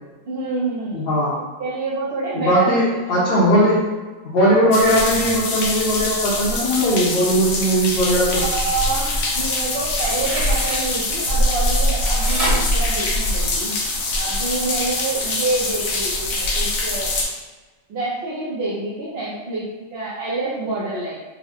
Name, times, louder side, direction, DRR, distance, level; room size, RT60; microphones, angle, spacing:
voice 1, 0.3-1.1 1.6-2.8 3.1-3.2 8.3-13.8 14.1-17.1 17.9-21.2, right 3 dB, 55° right, -9 dB, 0.8 m, -27 dB
voice 2, 0.9-1.3 2.3-3.9 4.2-8.4, equal, 50° left, -8 dB, 0.9 m, -18 dB
sound 1, 4.7-17.2, left 1 dB, 75° left, 1.1 m, -23 dB
sound 2, 10.1-10.8 12.2-13.7 14.2-14.3, equal, 25° right, 1.1 m, -27 dB
3.6 x 2.1 x 3.5 m, 1.2 s
omnidirectional pair, 1.5 m